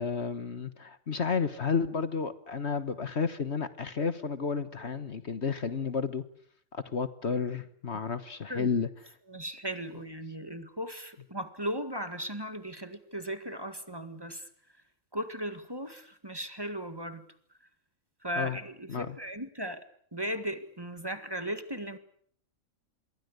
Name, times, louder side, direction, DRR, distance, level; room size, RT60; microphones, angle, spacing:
voice 1, 0.0-6.2 6.7-8.9 18.4-18.6 18.9-19.2, left 5 dB, 55° left, 12 dB, 1.6 m, -31 dB
voice 2, 9.3-14.5 15.1-17.2 18.2-19.8 20.1-22.0, equal, 20° right, 10 dB, 1.9 m, -37 dB
27.0 x 23.0 x 8.2 m, 0.62 s
omnidirectional pair, 1.4 m